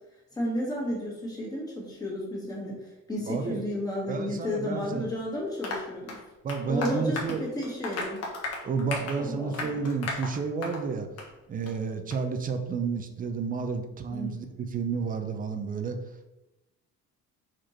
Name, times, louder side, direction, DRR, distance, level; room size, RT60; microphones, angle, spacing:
voice 1, 0.3-6.1 6.7-8.2 9.2-9.8 14.1-14.3, left 1 dB, 10° left, -4 dB, 1.9 m, -32 dB
voice 2, 3.3-3.6 4.1-5.1 6.4-7.4 8.6-11.1 11.5-16.0, right 5 dB, 25° right, 7 dB, 0.6 m, -31 dB
Applause, 5.6-10.9 11.2-11.3 11.7-11.8 12.1-12.2, left 3 dB, 50° left, 1.5 m, -36 dB
5.0 x 4.5 x 4.5 m, 0.98 s
cardioid pair, 165°, 31 cm